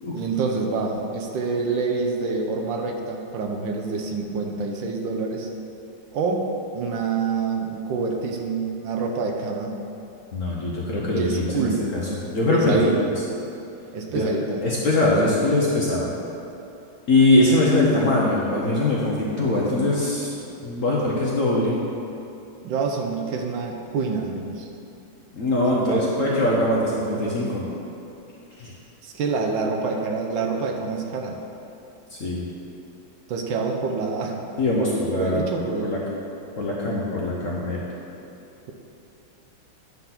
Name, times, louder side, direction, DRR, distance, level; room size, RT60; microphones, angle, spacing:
voice 1, 0.1-5.5 6.1-6.5 6.7-9.8 11.1-11.8 12.5-13.1 13.9-14.6 22.6-24.7 25.7-26.4 29.0-31.4 33.3-34.4 34.8-36.1, right 4 dB, 75° right, 2 dB, 1.4 m, -27 dB
voice 2, 10.3-12.0 12.3-12.8 14.1-14.3 14.6-16.1 17.1-20.3 20.6-21.8 25.3-27.7 28.6-28.7 32.1-32.4 34.6-36.0 36.6-37.8, left 2 dB, 55° left, -5 dB, 0.9 m, -22 dB
9.1 x 3.8 x 5.8 m, 2.7 s
omnidirectional pair, 2.2 m